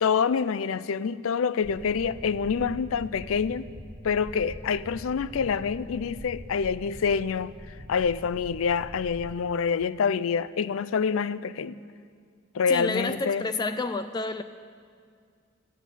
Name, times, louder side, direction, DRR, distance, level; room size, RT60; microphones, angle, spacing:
voice 1, 0.0-3.7 4.0-7.5 7.9-11.8 12.5-13.4, left 6 dB, 85° left, 0.4 m, -26 dB
sound 1, 1.6-9.3, equal, 20° right, 1.2 m, -43 dB
voice 2, 12.7-14.4, left 3 dB, 20° left, 0.3 m, -29 dB
14.5 x 7.3 x 9.9 m
head